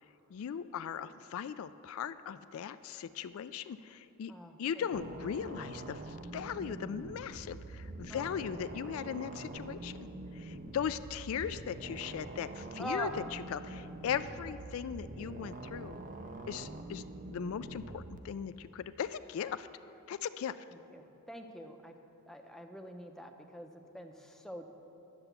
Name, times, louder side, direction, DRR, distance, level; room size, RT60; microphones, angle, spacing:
voice 1, 0.3-4.3 4.6-16.0 16.5-17.0 17.3-19.7 20.1-20.5, left 8 dB, 65° left, 13 dB, 0.3 m, -38 dB
voice 2, 4.3-4.9 8.1-8.3 12.8-13.1 20.7-21.9 22.3-24.7, equal, ahead, 3 dB, 0.6 m, -44 dB
sound 1, 4.9-18.2, right 2 dB, 35° right, 0.5 m, -45 dB
11.0 x 6.9 x 8.0 m, 2.9 s
head